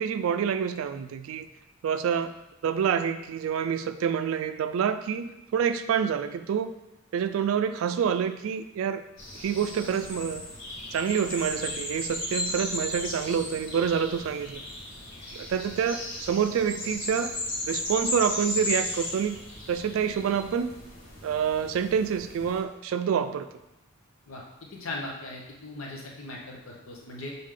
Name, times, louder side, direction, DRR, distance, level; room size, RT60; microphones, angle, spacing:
voice 1, 0.0-1.5 1.8-2.3 2.6-6.7 7.1-9.0 9.4-10.4 10.9-14.6 15.3-17.3 17.7-19.4 19.7-20.8 21.2-23.5, right 7 dB, 75° right, 10 dB, 0.3 m, -27 dB
sound 1, 9.2-22.6, left 1 dB, 60° left, 2.0 m, -35 dB
voice 2, 24.7-27.3, left 2 dB, 85° left, -1 dB, 1.1 m, -38 dB
6.5 x 4.0 x 3.7 m, 0.95 s
head